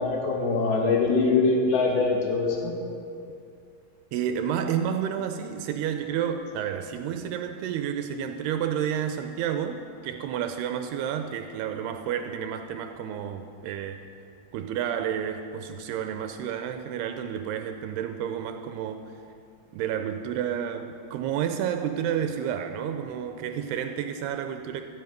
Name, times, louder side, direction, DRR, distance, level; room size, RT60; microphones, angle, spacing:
voice 1, 0.0-2.7, left 3 dB, 80° left, 0 dB, 4.1 m, -23 dB
voice 2, 4.1-14.0 14.5-19.1 19.7-24.8, right 9 dB, 85° right, 7 dB, 2.5 m, -30 dB
13.5 x 9.5 x 9.2 m, 2.5 s
omnidirectional pair, 5.1 m